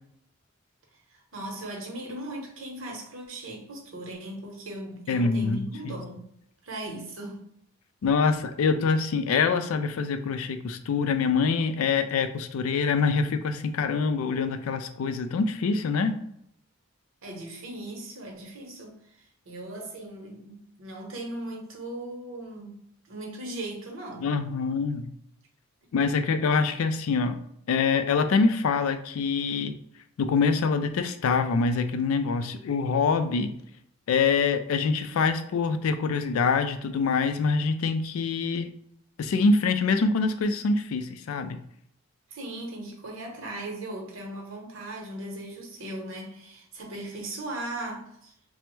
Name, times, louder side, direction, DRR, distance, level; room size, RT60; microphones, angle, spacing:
voice 1, 1.1-6.2 6.6-7.4 17.2-22.8 23.1-24.4 42.3-48.3, right 1 dB, 65° right, 0.8 m, -38 dB
voice 2, 5.1-6.0 8.0-16.2 24.2-25.1 25.9-27.4 27.7-29.7 30.2-33.5 34.1-38.7 39.2-41.6, left 4 dB, 75° left, 0.3 m, -25 dB
3.3 x 2.0 x 3.0 m
head